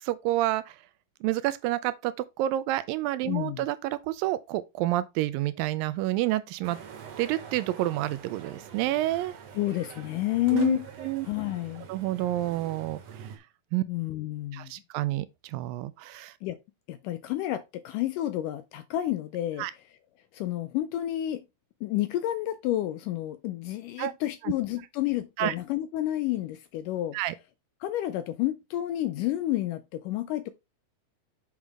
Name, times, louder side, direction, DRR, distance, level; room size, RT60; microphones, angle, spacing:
voice 1, 0.0-0.8 1.2-6.8 7.2-9.3 10.5-11.3 11.9-13.3 13.7-13.8 14.5-16.4 19.6-19.7 24.0-24.1 24.4-24.5 25.4-25.6 27.1-27.4, right 15 dB, 80° right, 2.1 m, -29 dB
voice 2, 3.3-3.7 9.6-10.9 11.3-11.9 13.9-14.7 16.4-16.6 16.9-19.7 20.3-21.5 21.8-27.2 27.8-30.5, left 14 dB, 80° left, 1.9 m, -30 dB
sound 1, 6.6-13.4, right 7 dB, 55° right, 2.0 m, -45 dB
7.4 x 6.1 x 3.5 m
omnidirectional pair, 4.2 m